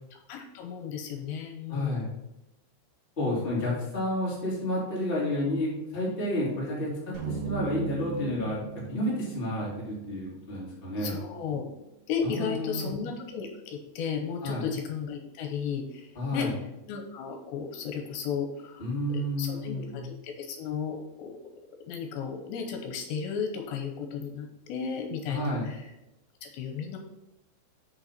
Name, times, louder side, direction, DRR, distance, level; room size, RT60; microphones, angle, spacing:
voice 1, 0.1-2.0 3.2-3.8 11.0-11.6 12.1-16.5 16.9-18.8 19.1-21.3 21.9-25.9 26.4-27.0, left 6 dB, 80° left, 3 dB, 3.1 m, -34 dB
voice 2, 1.7-2.1 3.2-8.6 8.9-11.2 12.2-12.9 14.4-14.6 16.1-16.5 18.8-20.0 25.3-25.7, left 1 dB, 15° left, -6 dB, 2.2 m, -30 dB
sound 1, 7.1-11.5, right 7 dB, 45° right, 3.1 m, -38 dB
6.7 x 5.5 x 5.8 m, 0.94 s
omnidirectional pair, 5.2 m